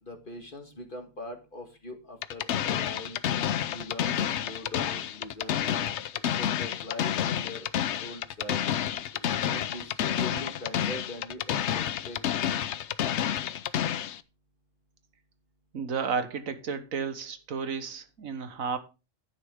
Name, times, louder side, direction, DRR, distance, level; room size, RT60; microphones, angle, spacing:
voice 1, 0.0-3.2 3.7-6.0 6.3-8.6 9.4-12.2, left 1 dB, 40° left, 1.7 m, -42 dB
sound 1, 2.2-14.2, left 10 dB, 65° left, 0.9 m, -29 dB
voice 2, 15.7-18.8, right 5 dB, 80° right, 1.6 m, -32 dB
11.0 x 9.7 x 3.5 m
omnidirectional pair, 1.4 m